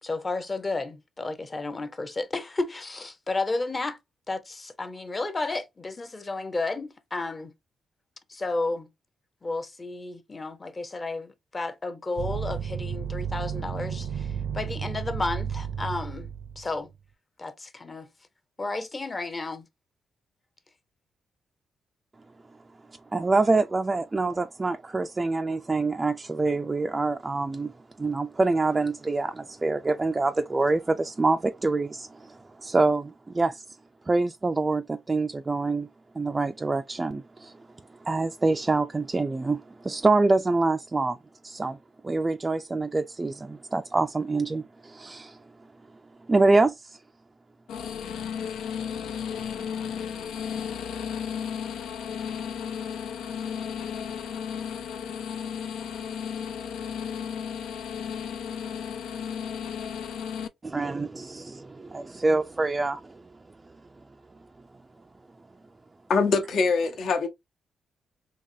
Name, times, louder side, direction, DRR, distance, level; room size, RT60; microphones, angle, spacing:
voice 1, 0.0-4.0 4.3-7.5 8.3-8.9 9.4-16.3 16.6-16.9 17.4-18.1 18.6-19.6, left 3 dB, 25° left, 0.7 m, -32 dB
sound 1, 12.2-16.7, right 8 dB, 70° right, 0.5 m, -32 dB
voice 2, 23.1-27.7 28.0-33.6 34.1-35.9 36.2-37.6 38.0-41.2 41.4-41.8 42.0-45.4 46.3-47.0 60.6-63.2, right 3 dB, 25° right, 0.3 m, -26 dB
sound 2, 47.7-60.5, left 7 dB, 90° left, 0.4 m, -34 dB
voice 3, 66.1-67.3, left 4 dB, 70° left, 1.1 m, -23 dB
3.9 x 2.9 x 2.6 m
cardioid pair, 95°, 0 cm